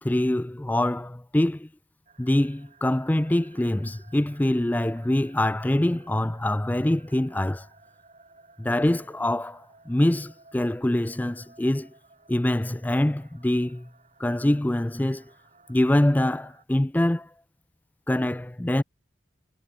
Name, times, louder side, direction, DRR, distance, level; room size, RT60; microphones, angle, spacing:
voice 1, 0.0-1.7 2.2-7.7 8.6-11.9 12.3-13.9 14.2-15.2 15.7-17.3 18.1-18.8, left 1 dB, 10° left, 0.3 m, -24 dB
sound 1, 2.1-16.6, right 3 dB, 35° right, 5.1 m, -57 dB
head